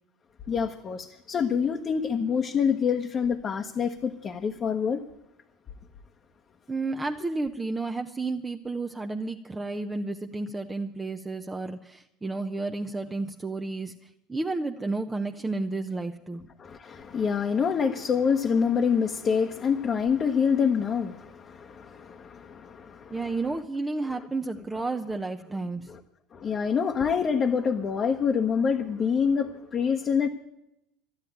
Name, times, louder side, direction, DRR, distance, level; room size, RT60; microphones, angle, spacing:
voice 1, 0.5-5.0 16.6-23.3 25.9-26.0 26.3-30.3, left 6 dB, 35° left, 2 dB, 1.1 m, -26 dB
voice 2, 6.7-13.9 14.3-16.4 23.1-25.9, right 3 dB, 15° right, 5 dB, 0.8 m, -31 dB
12.0 x 10.5 x 9.1 m, 0.86 s
hypercardioid pair, 85°, 0 cm